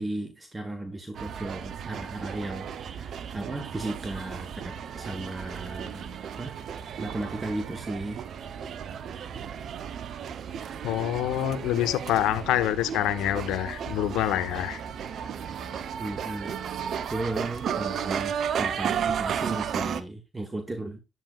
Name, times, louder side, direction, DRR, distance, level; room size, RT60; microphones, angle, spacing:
voice 1, 0.0-6.1 6.4-6.6 7.0-8.2 16.0-16.5 17.1-21.0, right 2 dB, 20° right, 1.7 m, -35 dB
sound 1, 1.1-20.0, right 8 dB, 65° right, 0.9 m, -34 dB
voice 2, 10.8-14.8, left 12 dB, 80° left, 0.7 m, -26 dB
11.0 x 9.0 x 2.5 m
hypercardioid pair, 55°, 0 cm